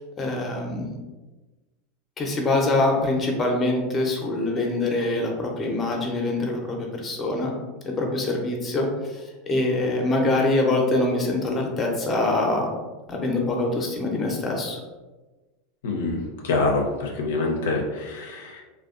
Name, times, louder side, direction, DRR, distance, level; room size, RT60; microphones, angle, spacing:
voice 1, 0.2-0.9 2.2-7.5 7.8-12.7 13.1-14.8, left 2 dB, 25° left, 1 dB, 0.6 m, -24 dB
voice 2, 15.8-16.2 16.4-18.6, left 3 dB, 80° left, 0 dB, 0.4 m, -25 dB
2.6 x 2.1 x 2.4 m, 1.2 s
hypercardioid pair, 100°, 0 cm